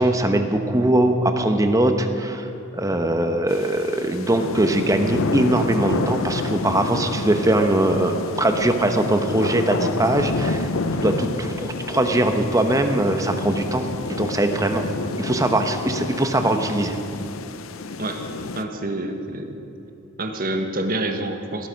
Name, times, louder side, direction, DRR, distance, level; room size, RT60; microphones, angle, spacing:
voice 1, 0.0-2.5 2.7-10.7 11.0-14.9 15.2-16.9, right 1 dB, 15° right, 6 dB, 0.9 m, -21 dB
sound 1, 3.5-18.6, left 3 dB, 85° left, 0.7 m, -29 dB
voice 2, 18.5-19.6 20.2-21.7, right 1 dB, 45° right, 5 dB, 1.4 m, -27 dB
19.0 x 12.5 x 5.2 m, 3.0 s
head